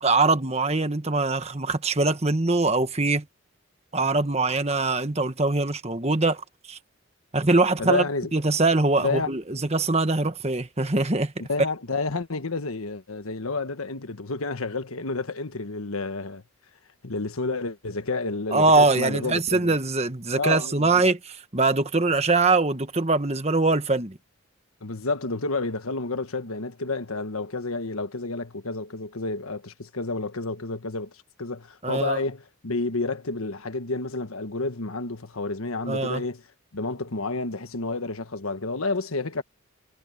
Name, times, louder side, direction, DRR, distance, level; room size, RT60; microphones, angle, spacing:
voice 1, 0.0-3.2 3.9-6.4 6.7-6.8 7.3-8.0 8.3-11.3 18.5-24.2 31.8-32.2 35.9-36.2, right 3 dB, 30° right, 1.3 m, -23 dB
voice 2, 7.8-8.3 9.0-9.3 11.5-16.4 17.0-19.7 20.3-21.0 24.8-31.1 31.4-36.4 36.7-39.4, left 3 dB, 85° left, 1.4 m, -30 dB
head